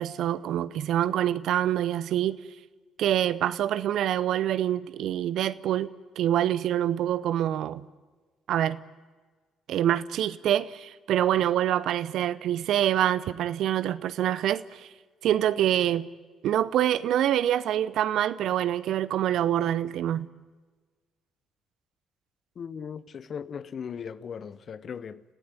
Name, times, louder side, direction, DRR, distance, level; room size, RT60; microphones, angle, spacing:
voice 1, 0.0-2.4 3.0-5.9 6.2-7.8 8.5-8.8 9.7-14.9 15.2-16.1 16.4-20.3, right 11 dB, 65° right, 0.7 m, -26 dB
voice 2, 22.6-25.2, left 7 dB, 50° left, 0.9 m, -38 dB
29.0 x 15.5 x 9.7 m
hypercardioid pair, 50°, 0 cm